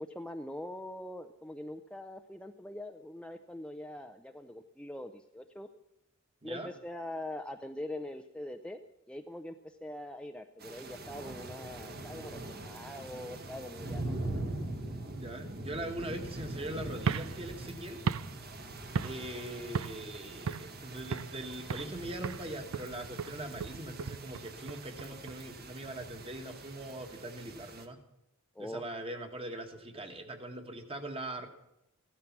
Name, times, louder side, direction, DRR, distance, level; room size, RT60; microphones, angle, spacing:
voice 1, 0.0-5.7 6.4-8.8 9.1-14.4 28.6-28.8, left 1 dB, 5° left, 6 dB, 0.5 m, -43 dB
sound 1, 10.6-27.9, right 2 dB, 50° right, 1.5 m, -43 dB
voice 2, 15.1-18.0 19.0-28.0 28.6-31.5, right 1 dB, 25° right, 6 dB, 1.6 m, -41 dB
sound 2, 17.0-19.4 19.7-20.1 20.5-21.4 21.7-22.0 22.2-25.4, right 6 dB, 85° right, 0.5 m, -36 dB
15.5 x 12.5 x 6.0 m, 0.86 s
head